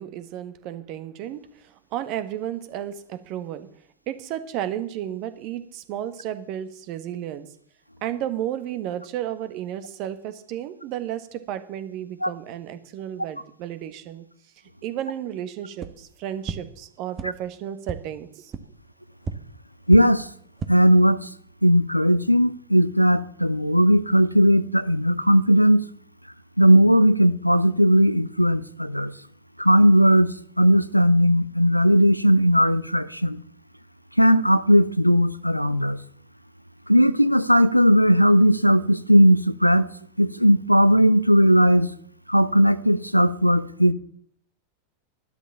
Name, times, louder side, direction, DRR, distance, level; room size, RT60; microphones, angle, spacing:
voice 1, 0.0-3.7 4.1-7.5 8.0-14.2 14.8-18.5, right 11 dB, 40° right, 1.6 m, -33 dB
sound 1, 15.8-15.9 16.4-16.5 17.1-17.2 17.8-17.9 18.5-18.6 19.2-19.3 19.9-20.0 20.4-20.7, right 6 dB, 25° right, 1.3 m, -31 dB
voice 2, 19.9-20.3 20.7-21.3 21.6-25.8 26.6-29.1 29.6-30.3 30.6-33.4 34.2-36.0 36.9-39.9 40.2-41.9 42.3-43.9, equal, 90° left, 0.7 m, -17 dB
12.0 x 12.0 x 7.0 m
figure-of-eight pair, 90°, 0 cm